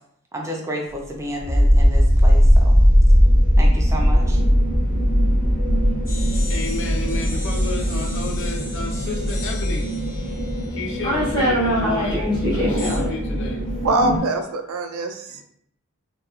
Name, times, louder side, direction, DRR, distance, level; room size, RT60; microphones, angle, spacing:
voice 1, 0.3-2.8 3.6-4.4, equal, 15° right, -1 dB, 0.5 m, -31 dB
sound 1, 1.4-14.2, equal, 20° left, 0.8 m, -18 dB
voice 2, 5.9-9.9 10.2-10.3 10.7-13.8 14.8-15.4, left 3 dB, 60° left, 2 dB, 0.5 m, -33 dB
sound 2, 6.1-11.8 12.8-13.0, left 2 dB, 40° left, 1.0 m, -39 dB
voice 3, 13.8-15.4, right 2 dB, 80° right, 6 dB, 0.4 m, -23 dB
2.3 x 2.3 x 2.8 m, 0.68 s
head